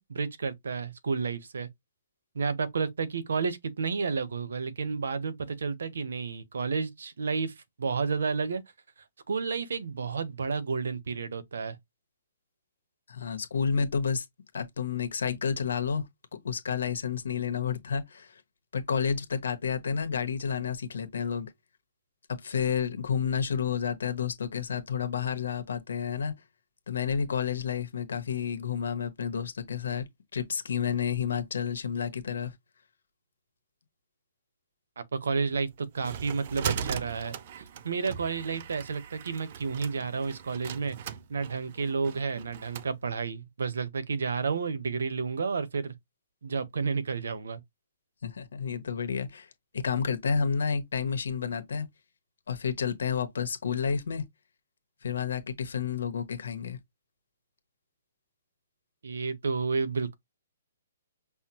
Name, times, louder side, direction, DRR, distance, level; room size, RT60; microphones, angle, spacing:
voice 1, 0.0-1.7 2.3-7.5 7.8-8.6 9.3-11.8 35.0-35.7 35.9-37.3 37.8-41.0 41.3-45.9 46.4-47.6 59.0-60.1, right 5 dB, 85° right, 0.9 m, -31 dB
voice 2, 13.1-14.2 14.5-16.1 16.4-18.4 18.7-21.5 22.3-26.3 26.9-32.5 48.2-49.5 49.7-51.9 52.5-54.2 55.0-56.8, left 6 dB, 80° left, 1.1 m, -30 dB
sound 1, 35.5-42.9, right 8 dB, 40° right, 0.4 m, -39 dB
5.6 x 2.2 x 2.8 m
hypercardioid pair, 165°, 0 cm